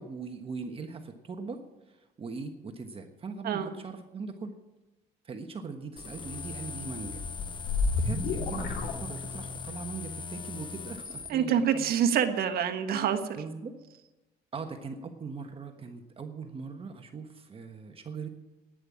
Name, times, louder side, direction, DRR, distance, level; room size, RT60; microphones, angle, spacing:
voice 1, 0.0-4.5 5.2-7.2 8.0-11.8 13.3-13.7 14.5-18.3, right 4 dB, 35° right, 5 dB, 1.3 m, -40 dB
sound 1, 6.0-11.3, left 5 dB, 30° left, 0.8 m, -40 dB
sound 2, 7.0-9.7, left 3 dB, 80° left, 2.4 m, -31 dB
voice 2, 11.3-13.4, right 8 dB, 65° right, 6 dB, 1.5 m, -26 dB
11.0 x 10.0 x 8.6 m, 1.1 s
cardioid pair, 110°, 17 cm